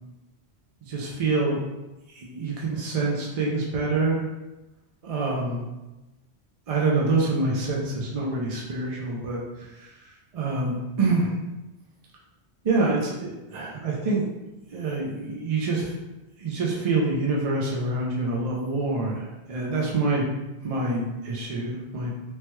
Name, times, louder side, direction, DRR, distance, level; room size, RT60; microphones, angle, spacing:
voice 1, 0.8-1.6 2.1-4.2 5.0-5.6 6.7-9.9 10.3-11.3 12.6-14.3 14.7-15.9 16.4-20.2 20.6-22.3, right 3 dB, 50° right, -4 dB, 0.4 m, -26 dB
3.1 x 2.2 x 3.0 m, 1.0 s
omnidirectional pair, 1.1 m